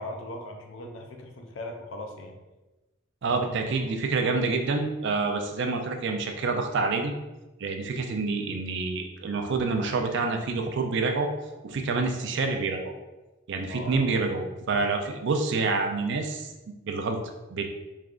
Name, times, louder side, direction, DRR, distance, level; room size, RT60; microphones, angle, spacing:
voice 1, 0.0-2.4 3.3-3.9 13.7-14.1, equal, 75° left, 3 dB, 0.5 m, -39 dB
voice 2, 3.2-7.1 7.6-11.3 11.6-12.9 13.5-16.5 16.8-17.2 17.5-17.7, right 3 dB, 65° right, 4 dB, 0.4 m, -27 dB
3.6 x 3.2 x 2.4 m, 1.1 s
head